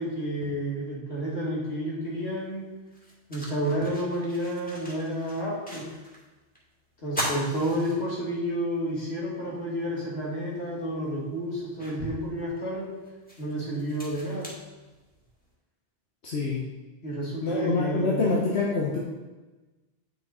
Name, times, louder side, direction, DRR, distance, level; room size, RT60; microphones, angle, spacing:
voice 1, 0.0-2.6 3.3-5.9 7.0-12.9 13.4-14.5 17.0-18.3, equal, 75° left, -5 dB, 3.0 m, -30 dB
sound 1, 2.2-2.3 2.9-6.2 6.5-6.6 7.0-8.5 9.0-9.1 10.5-10.6 11.2-15.4, equal, 10° left, 2.1 m, -39 dB
voice 2, 16.2-16.6 17.4-19.0, left 3 dB, 90° left, -4 dB, 1.5 m, -26 dB
9.3 x 6.4 x 4.4 m, 1.2 s
omnidirectional pair, 1.1 m